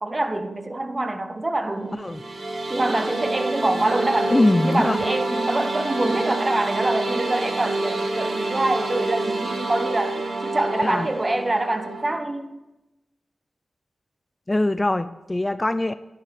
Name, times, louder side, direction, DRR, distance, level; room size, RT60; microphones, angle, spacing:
voice 1, 0.0-2.1 2.7-12.5, right 2 dB, 25° right, 9 dB, 1.2 m, -25 dB
sound 1, 2.0-12.2, right 2 dB, 55° right, 1.7 m, -27 dB
voice 2, 4.3-5.0 10.8-11.1 14.5-15.9, left 1 dB, 20° left, 13 dB, 0.4 m, -22 dB
11.0 x 10.0 x 6.7 m, 1.0 s
cardioid pair, 75°, 0 cm